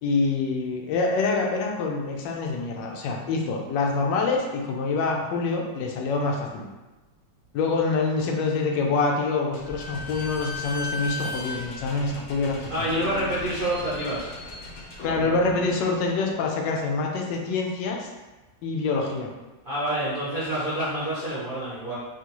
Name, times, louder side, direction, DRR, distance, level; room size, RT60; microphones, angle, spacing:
voice 1, 0.0-6.6 7.5-12.6 12.9-13.0 15.0-18.1 18.6-19.3, left 3 dB, 85° left, 0 dB, 1.2 m, -26 dB
Slam / Squeak, 9.5-16.8, left 2 dB, 65° left, 1.0 m, -37 dB
voice 2, 12.7-14.3 19.6-21.9, right 1 dB, 50° right, -10 dB, 0.6 m, -27 dB
3.7 x 2.3 x 2.9 m, 1.2 s
omnidirectional pair, 1.9 m